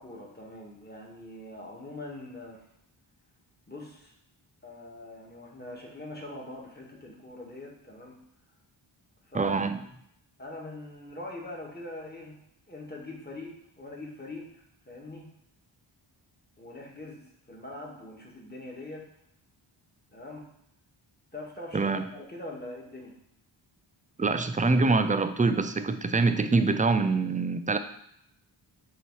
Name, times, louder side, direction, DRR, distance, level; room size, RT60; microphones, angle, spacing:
voice 1, 0.0-2.7 3.7-4.1 4.6-8.1 9.3-9.7 10.4-12.4 12.7-15.3 16.6-19.1 20.1-20.5 21.3-23.2, left 1 dB, 20° left, -2 dB, 1.7 m, -42 dB
voice 2, 9.3-9.8 21.7-22.1 24.2-27.8, right 3 dB, 15° right, 9 dB, 0.4 m, -25 dB
8.0 x 3.1 x 4.7 m, 0.72 s
wide cardioid pair, 70°, 49 cm